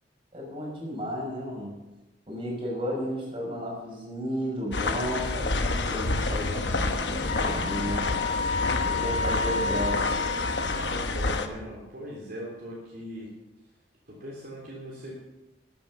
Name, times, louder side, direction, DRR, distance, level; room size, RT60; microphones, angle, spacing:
voice 1, 0.3-1.7 2.3-8.1 8.8-10.2, equal, 30° right, -3 dB, 5.9 m, -33 dB
sound 1, 4.7-11.5, left 3 dB, 70° left, 1.2 m, -28 dB
Wind instrument woodwind instrument, 7.3-11.1, left 4 dB, 40° left, 0.6 m, -31 dB
voice 2, 8.8-9.2 10.7-13.3 14.1-15.1, equal, 55° right, -5 dB, 3.4 m, -40 dB
13.5 x 10.0 x 6.9 m, 1.1 s
head